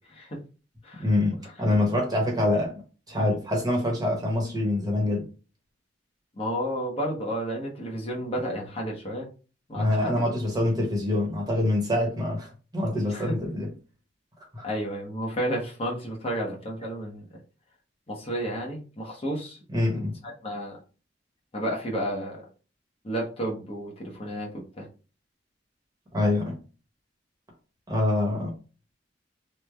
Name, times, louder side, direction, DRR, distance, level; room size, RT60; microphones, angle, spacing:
voice 1, 1.0-2.8 3.1-5.3 9.7-12.5 12.7-13.7 14.5-14.6 19.7-20.1 26.1-26.6 27.9-28.5, left 1 dB, 20° right, 0.9 m, -25 dB
voice 2, 6.4-9.3 9.7-10.3 13.1-13.4 14.6-17.2 18.1-19.6 19.9-20.8 21.5-22.4 23.0-24.9, equal, 30° left, 0.8 m, -32 dB
3.1 x 2.1 x 3.4 m
head